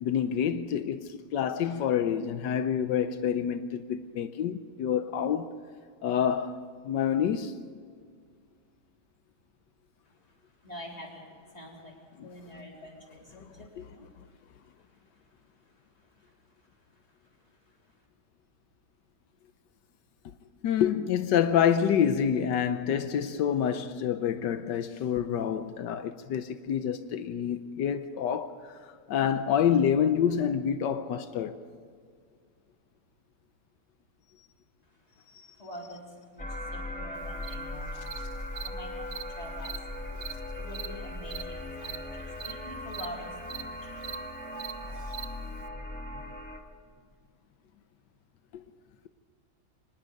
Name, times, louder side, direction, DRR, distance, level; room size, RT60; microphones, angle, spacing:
voice 1, 0.0-5.5 6.0-6.6 6.8-7.5 12.2-12.3 13.8-13.9 20.6-28.8 29.1-31.6 35.3-35.5 44.9-45.1 48.5-48.6, left 8 dB, 85° left, 1.4 m, -27 dB
voice 2, 10.1-14.3 14.6-18.0 34.8-44.1, equal, 20° left, 3.8 m, -48 dB
sound 1, 36.4-46.6, left 1 dB, 5° left, 1.5 m, -38 dB
Cricket, 37.4-37.5 38.1-38.2 38.6-38.7 39.1-39.2 39.6-39.8 40.2-40.3 40.7-40.9 41.3-41.4 41.8-42.0 42.4-42.5 42.9-43.1 43.5-43.6 44.0-44.2 44.6-44.7 45.1-45.2, right 9 dB, 45° right, 0.7 m, -39 dB
25.0 x 19.5 x 5.3 m
omnidirectional pair, 1.8 m